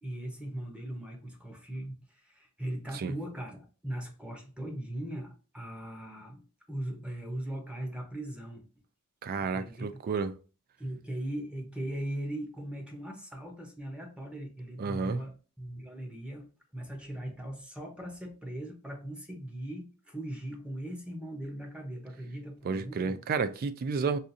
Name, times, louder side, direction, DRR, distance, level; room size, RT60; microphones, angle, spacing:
voice 1, 0.0-8.6 9.4-10.0 10.8-16.5 16.7-23.2, right 1 dB, 5° right, 0.7 m, -39 dB
voice 2, 9.2-10.3 14.8-15.2 22.6-24.2, right 5 dB, 45° right, 0.3 m, -31 dB
4.0 x 2.4 x 2.5 m
head